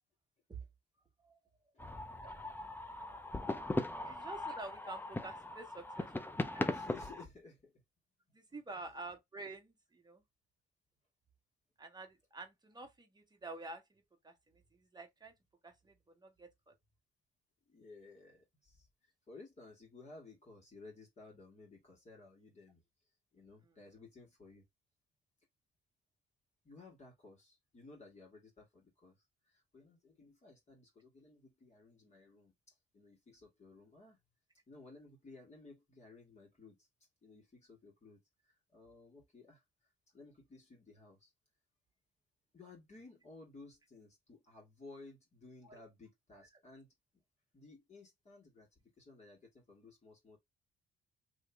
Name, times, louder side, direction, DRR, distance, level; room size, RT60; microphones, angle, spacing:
sound 1, 1.8-7.2, left 2 dB, 10° left, 0.5 m, -39 dB
voice 1, 4.0-6.1 6.5-6.6 8.3-10.2 11.8-13.8 14.2-15.3 15.6-16.7 45.6-45.8, right 2 dB, 20° right, 1.3 m, -49 dB
voice 2, 6.7-7.8 8.7-8.8 17.7-22.8 23.3-24.6 26.6-29.2 29.5-34.2 34.7-36.9 37.2-39.6 40.1-41.3 42.5-46.9 47.5-50.4, left 3 dB, 35° left, 1.8 m, -57 dB
3.1 x 2.8 x 3.4 m
cardioid pair, 90°, 20 cm